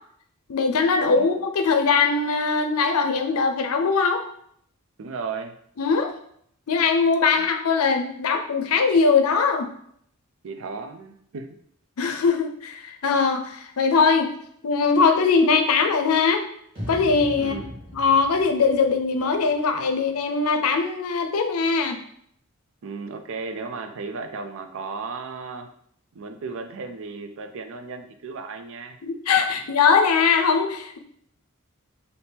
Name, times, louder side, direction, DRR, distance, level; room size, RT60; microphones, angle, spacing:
voice 1, 0.5-4.2 5.8-6.1 6.7-9.7 12.0-14.3 14.6-16.4 16.9-17.5 17.9-22.0 29.0-31.0, left 5 dB, 80° left, 6 dB, 0.5 m, -21 dB
voice 2, 5.0-5.5 7.4-7.5 10.4-11.5 17.3-17.7 22.8-25.7 26.1-29.0, right 4 dB, 65° right, 6 dB, 0.5 m, -35 dB
sound 1, 16.7-19.9, equal, 25° right, 1.6 m, -39 dB
3.4 x 2.7 x 4.3 m, 0.67 s
head